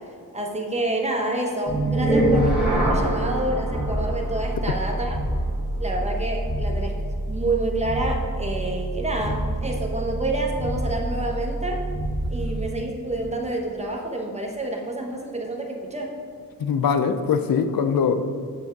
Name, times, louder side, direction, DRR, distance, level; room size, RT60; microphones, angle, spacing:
voice 1, 0.3-5.1 5.8-6.9 7.3-11.9 12.3-16.1, right 2 dB, 20° right, 1 dB, 1.0 m, -28 dB
sound 1, 1.7-12.8, right 1 dB, 5° right, 1.5 m, -26 dB
voice 2, 16.6-18.2, left 6 dB, 75° left, 8 dB, 0.5 m, -22 dB
7.7 x 3.5 x 5.9 m, 2.2 s
wide cardioid pair, 115°, 35 cm